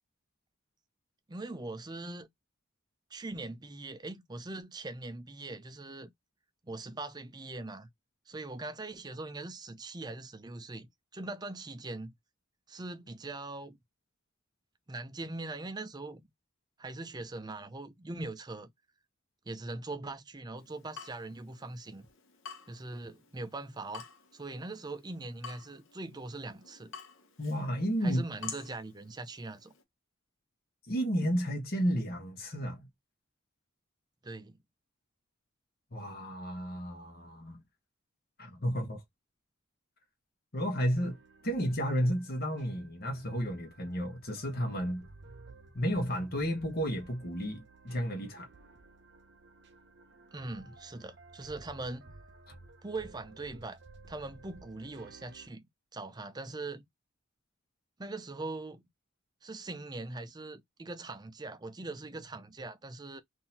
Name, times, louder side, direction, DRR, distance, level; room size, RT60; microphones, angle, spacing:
voice 1, 1.3-2.3 3.1-6.1 6.6-7.9 8.3-12.1 12.7-13.8 14.9-16.2 16.8-18.7 19.5-22.1 22.7-24.1 24.3-26.9 28.0-29.7 34.2-34.6 50.3-52.1 52.8-53.8 54.1-55.7 55.9-56.9 58.0-58.8 59.4-63.2, right 2 dB, 20° right, 0.5 m, -41 dB
Water tap faucet / Drip, 20.6-29.8, left 7 dB, 65° left, 0.9 m, -50 dB
voice 2, 27.4-28.2 30.9-32.9 35.9-37.6 38.4-39.0 40.5-41.2 41.4-45.1 45.7-48.5, equal, 45° left, 1.2 m, -32 dB
sound 1, 40.9-55.5, right 3 dB, 55° right, 0.7 m, -55 dB
3.8 x 2.7 x 2.8 m
head